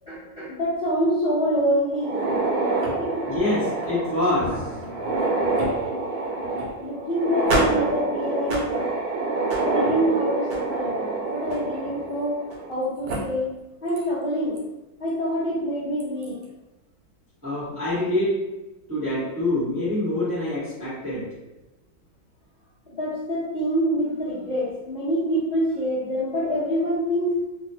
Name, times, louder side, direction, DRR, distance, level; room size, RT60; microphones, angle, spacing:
voice 1, 0.0-2.3 3.0-3.2 6.8-8.7 9.6-12.4 12.7-14.6 15.0-16.4 22.9-27.4, equal, 45° left, -10 dB, 0.7 m, -26 dB
sound 1, 1.9-12.7 13.1-13.2 14.0-14.1 14.6-14.7 16.0-16.3, right 3 dB, 80° right, 1.5 m, -26 dB
voice 2, 3.2-5.2 17.4-18.4 18.9-21.3, left 1 dB, 10° right, -9 dB, 0.6 m, -26 dB
3.9 x 2.3 x 2.8 m, 1.0 s
omnidirectional pair, 2.3 m